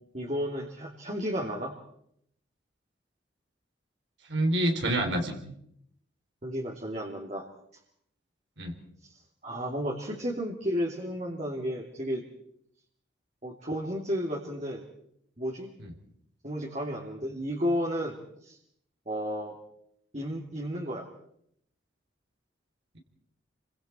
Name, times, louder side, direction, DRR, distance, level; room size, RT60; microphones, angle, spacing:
voice 1, 0.1-1.7 6.4-7.5 9.0-9.1 9.4-12.2 13.4-14.8 15.4-15.7 16.4-18.6 19.1-19.6 20.1-21.0, equal, 40° right, -1 dB, 2.9 m, -32 dB
voice 2, 4.3-5.4 8.6-8.8 15.8-15.9, right 1 dB, 70° right, 3 dB, 3.7 m, -27 dB
29.5 x 24.5 x 4.5 m, 0.72 s
head